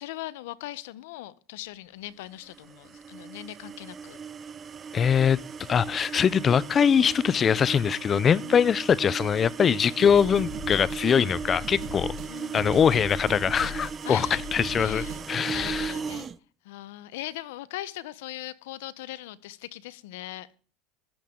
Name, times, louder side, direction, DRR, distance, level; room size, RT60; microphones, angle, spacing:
voice 1, 0.0-4.2 8.4-8.6 12.3-12.7 14.0-14.4 14.7-15.2 15.5-16.3 16.6-20.6, left 15 dB, 80° left, 0.7 m, -39 dB
sound 1, 2.4-16.4, right 6 dB, 30° right, 0.5 m, -37 dB
voice 2, 4.9-5.4 5.7-12.2 12.5-15.9, left 7 dB, 30° left, 0.4 m, -22 dB
sound 2, 10.0-15.8, left 1 dB, 45° right, 7.3 m, -39 dB
15.0 x 10.5 x 3.7 m
supercardioid pair, 120°, 0 cm